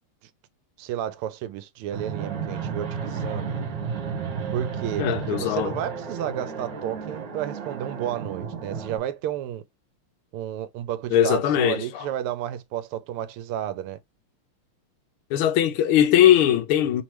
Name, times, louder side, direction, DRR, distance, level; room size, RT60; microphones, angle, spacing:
voice 1, 0.8-3.7 4.5-9.6 10.3-14.0, right 11 dB, 90° right, 1.5 m, -32 dB
Fixed-wing aircraft airplane, 1.9-9.0, right 6 dB, 60° right, 1.7 m, -32 dB
voice 2, 5.0-5.7 11.1-12.1 15.3-17.0, left 11 dB, 80° left, 1.5 m, -20 dB
3.8 x 3.0 x 3.0 m
omnidirectional pair, 2.4 m